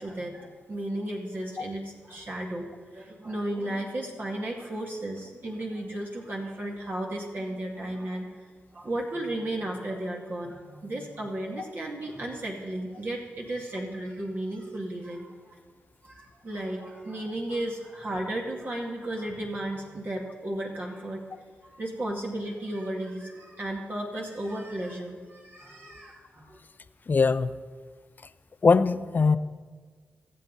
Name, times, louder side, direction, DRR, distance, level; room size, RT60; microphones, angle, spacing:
voice 1, 0.0-8.3 8.7-15.6 16.0-26.6, right 1 dB, 50° right, -2 dB, 2.3 m, -34 dB
voice 2, 27.1-27.5 28.6-29.4, left 4 dB, 50° left, 13 dB, 0.7 m, -21 dB
20.0 x 7.6 x 4.1 m, 1.5 s
supercardioid pair, 40°, 4 cm